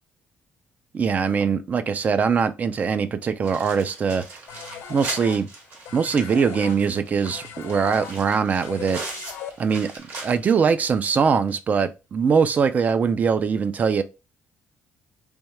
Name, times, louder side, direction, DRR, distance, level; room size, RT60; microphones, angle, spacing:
voice 1, 0.9-4.4 4.9-5.5 5.9-9.0 9.6-9.9 10.2-14.0, right 6 dB, 35° right, 0.4 m, -22 dB
sound 1, 3.4-10.7 11.0-11.1 11.5-11.6 12.8-12.9, right 2 dB, 60° right, 2.0 m, -39 dB
sound 2, 4.5-10.0, left 7 dB, 85° left, 0.8 m, -39 dB
3.5 x 3.1 x 2.9 m
cardioid pair, 115°, 4 cm